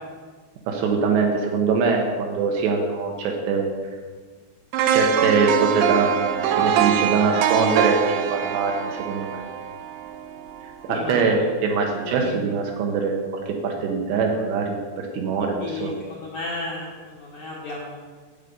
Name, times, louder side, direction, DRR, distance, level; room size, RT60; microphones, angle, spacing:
voice 1, 0.7-3.7 4.9-9.4 10.8-15.9, right 4 dB, 70° right, 1 dB, 3.0 m, -23 dB
sound 1, 4.7-10.7 11.1-11.3, right 9 dB, 90° right, 2.5 m, -23 dB
voice 2, 10.9-11.4 12.0-12.4 15.6-18.0, left 2 dB, 70° left, -4 dB, 2.0 m, -33 dB
11.0 x 8.3 x 5.3 m, 1.5 s
omnidirectional pair, 5.6 m